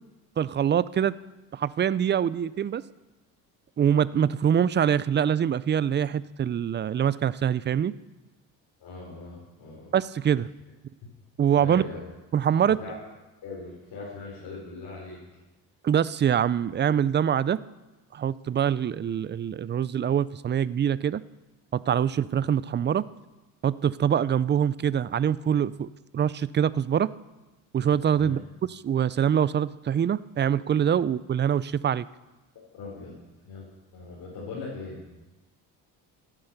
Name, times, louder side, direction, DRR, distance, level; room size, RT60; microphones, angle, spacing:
voice 1, 0.4-1.1 1.5-2.8 3.8-7.9 9.9-10.5 11.4-11.8 12.3-12.8 15.8-17.6 18.1-21.2 21.7-23.1 23.6-27.1 27.7-28.4 28.7-32.1, right 9 dB, 25° right, 18 dB, 0.5 m, -24 dB
voice 2, 8.8-9.9 11.6-12.0 12.7-13.0 13.4-15.2 28.2-28.4 32.7-33.1 33.4-35.0, left 3 dB, 65° left, -5 dB, 4.7 m, -40 dB
14.5 x 9.9 x 6.8 m, 1.1 s
supercardioid pair, 85°, 41 cm